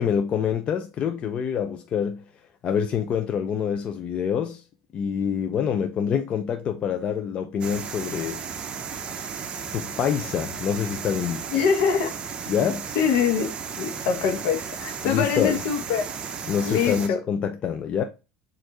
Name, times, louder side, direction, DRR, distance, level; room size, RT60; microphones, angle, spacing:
voice 1, 0.0-2.2 2.6-4.6 4.9-8.4 9.7-11.4 12.5-12.9 15.0-15.6 16.5-18.0, left 8 dB, 40° left, 0.5 m, -26 dB
sound 1, 7.6-17.1, right 6 dB, 35° right, 0.6 m, -34 dB
voice 2, 11.5-12.1 12.9-16.1 16.6-17.2, left 7 dB, 70° left, 0.9 m, -24 dB
6.3 x 2.6 x 2.9 m
supercardioid pair, 110°, 3 cm